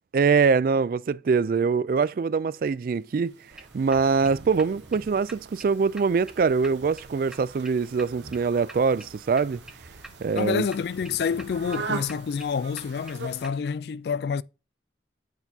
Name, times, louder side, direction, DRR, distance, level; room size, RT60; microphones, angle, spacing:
voice 1, 0.1-3.3 3.7-9.6 10.2-10.7, right 5 dB, 50° right, 0.3 m, -23 dB
sound 1, 2.9-13.5, right 4 dB, 85° right, 1.0 m, -41 dB
sound 2, 3.5-13.6, right 1 dB, 5° right, 0.6 m, -49 dB
voice 2, 10.3-14.4, left 6 dB, 65° left, 0.3 m, -28 dB
7.9 x 6.9 x 2.7 m
head